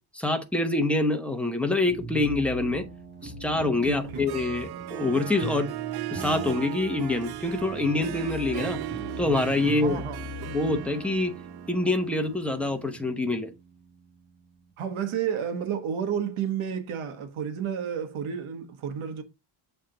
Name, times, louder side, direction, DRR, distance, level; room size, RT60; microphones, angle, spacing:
voice 1, 0.1-2.9 3.2-5.7 6.1-8.8 9.2-10.0 10.5-11.3 11.7-13.5, left 2 dB, 5° left, 0.8 m, -26 dB
sound 1, 1.9-14.7, right 1 dB, 20° right, 1.9 m, -41 dB
voice 2, 3.8-4.2 9.6-10.2 14.8-19.2, right 8 dB, 80° right, 1.4 m, -31 dB
Harp, 4.0-13.0, right 14 dB, 55° right, 0.5 m, -37 dB
7.1 x 3.4 x 3.8 m
cardioid pair, 145°, 49 cm